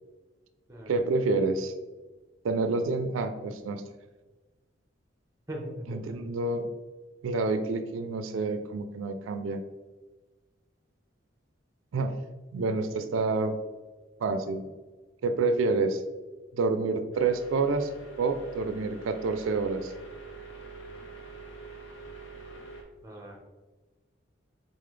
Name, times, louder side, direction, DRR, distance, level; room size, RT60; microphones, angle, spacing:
voice 1, 0.9-1.7 2.4-3.9 5.9-6.7 7.2-9.6 11.9-12.2 12.5-13.6 14.2-14.7 15.2-16.0 16.5-17.9 18.2-19.9, right 3 dB, 85° right, 9 dB, 0.4 m, -28 dB
voice 2, 5.5-6.2 23.0-23.4, right 1 dB, 15° right, 1 dB, 0.7 m, -40 dB
sound 1, 17.1-22.8, right 4 dB, 75° left, 0.8 m, -45 dB
3.9 x 3.8 x 3.2 m, 1.3 s
head